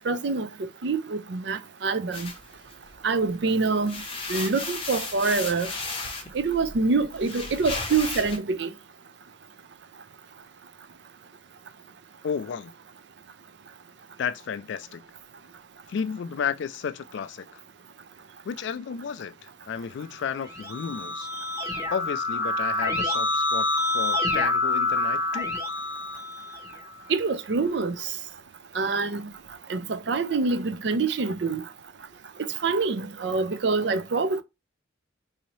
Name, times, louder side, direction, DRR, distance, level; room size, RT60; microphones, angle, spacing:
voice 1, 0.1-0.5 0.8-2.3 3.0-3.9 4.3-5.7 6.3-8.7 27.1-27.9 28.8-29.2 29.7-31.6 32.6-34.4, right 4 dB, 60° right, 0.5 m, -25 dB
sound 1, 2.1-3.3 3.7-8.4, left 3 dB, 25° left, 0.7 m, -35 dB
voice 2, 12.2-12.7 14.2-15.0 15.9-17.6 18.4-21.3 21.9-23.7 23.9-25.6, left 7 dB, 65° left, 0.3 m, -32 dB
Keyboard (musical), 20.3-26.9, left 2 dB, 15° right, 1.1 m, -27 dB
3.9 x 2.7 x 3.1 m
head